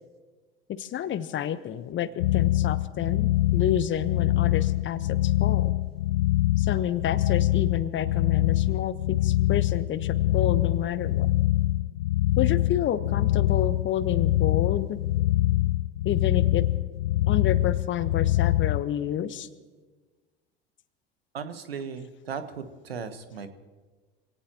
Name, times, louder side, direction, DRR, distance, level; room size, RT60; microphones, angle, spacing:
voice 1, 0.7-5.7 6.6-11.3 12.4-15.0 16.0-16.7 17.3-19.5, left 10 dB, 40° left, 12 dB, 1.2 m, -29 dB
sound 1, 2.2-18.8, left 16 dB, 75° left, 0.4 m, -24 dB
voice 2, 21.3-23.5, right 6 dB, 85° right, 9 dB, 1.3 m, -37 dB
26.0 x 18.0 x 3.0 m, 1.3 s
hypercardioid pair, 70°, 29 cm